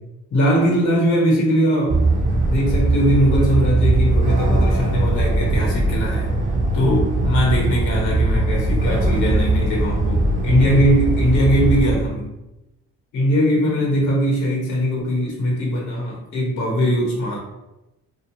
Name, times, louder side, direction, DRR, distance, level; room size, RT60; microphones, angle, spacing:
voice 1, 0.3-2.0 2.3-6.3 6.7-12.3 13.1-17.4, equal, 80° left, -1 dB, 0.9 m, -20 dB
sound 1, 1.9-11.9, right 2 dB, 25° right, 0.5 m, -20 dB
2.5 x 2.4 x 2.9 m, 0.96 s
cardioid pair, 90°, 30 cm